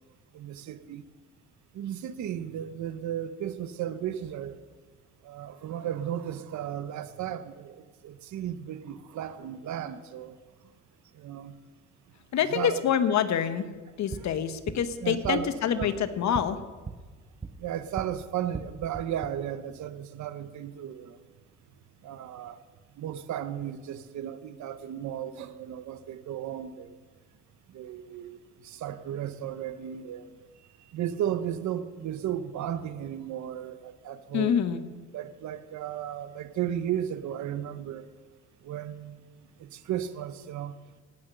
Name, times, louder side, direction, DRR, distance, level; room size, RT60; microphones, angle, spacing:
voice 1, 0.3-1.0 1.7-4.6 5.2-10.4 11.1-11.6 12.5-12.8 14.2-14.3 15.0-15.5 15.8-15.9 17.6-21.2 22.0-22.6 23.0-26.9 27.7-30.3 30.8-34.6 35.1-38.1 38.6-39.3 39.6-40.7, right 10 dB, 70° right, 12 dB, 0.8 m, -35 dB
voice 2, 12.3-13.7 14.0-16.6 34.3-34.8, left 8 dB, 65° left, 10 dB, 1.0 m, -26 dB
sound 1, 13.9-18.1 18.4-19.3, right 4 dB, 25° right, 0.8 m, -41 dB
17.5 x 6.1 x 6.6 m, 1.3 s
cardioid pair, 90°, 30 cm